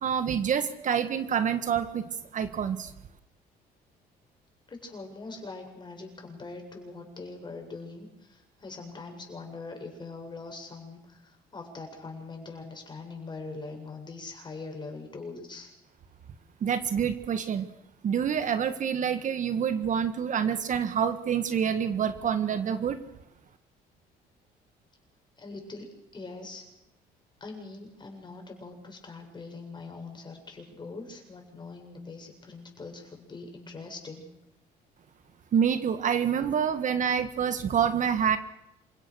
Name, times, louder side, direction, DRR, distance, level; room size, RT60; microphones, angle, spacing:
voice 1, 0.0-2.9 16.6-17.7 18.0-23.0 35.5-38.4, right 8 dB, 50° right, 10 dB, 1.7 m, -27 dB
voice 2, 4.7-15.7 25.4-25.8 26.1-26.6 27.4-34.3, left 3 dB, 25° left, 3 dB, 7.6 m, -42 dB
28.0 x 17.0 x 6.5 m, 0.86 s
cardioid pair, 110°, 17 cm